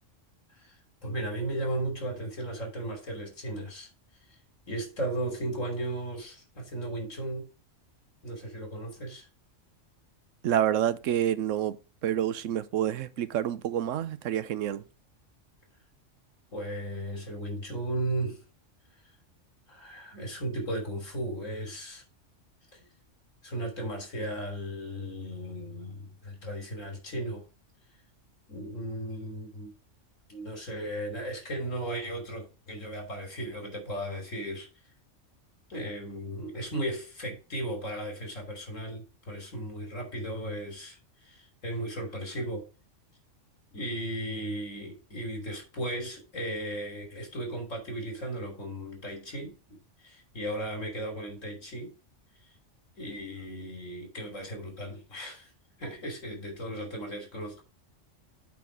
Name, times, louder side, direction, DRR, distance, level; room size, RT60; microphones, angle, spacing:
voice 1, 0.6-3.9 4.3-4.4 4.7-7.5 8.2-9.3 16.5-18.4 19.7-22.0 22.7-22.8 23.4-27.4 28.5-29.7 30.3-34.7 35.7-42.7 43.7-49.5 50.0-51.9 53.0-55.5 55.8-57.6, right 1 dB, 90° left, 3.5 m, -36 dB
voice 2, 10.4-11.8 12.0-14.8, right 11 dB, 80° right, 1.0 m, -28 dB
8.4 x 4.2 x 6.0 m
omnidirectional pair, 1.3 m